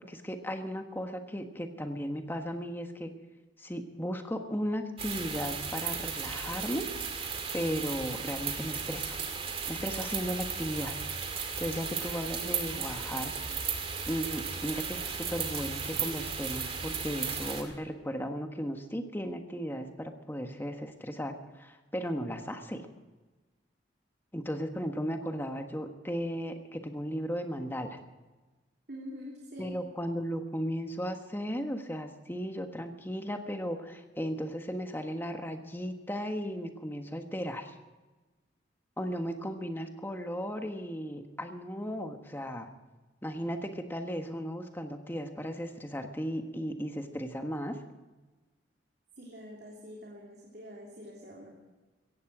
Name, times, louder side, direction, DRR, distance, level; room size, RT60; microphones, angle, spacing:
voice 1, 0.1-3.1 3.6-6.8 7.5-9.2 9.7-10.9 11.6-13.3 14.1-22.9 24.3-28.0 29.6-37.7 39.0-42.7 43.2-47.8, equal, 10° left, 5 dB, 1.4 m, -36 dB
sound 1, 5.0-17.6, right 6 dB, 30° right, 2.2 m, -35 dB
voice 2, 28.9-29.7 49.2-51.5, equal, 55° right, -3 dB, 3.2 m, -45 dB
17.0 x 15.0 x 4.9 m, 1.2 s
head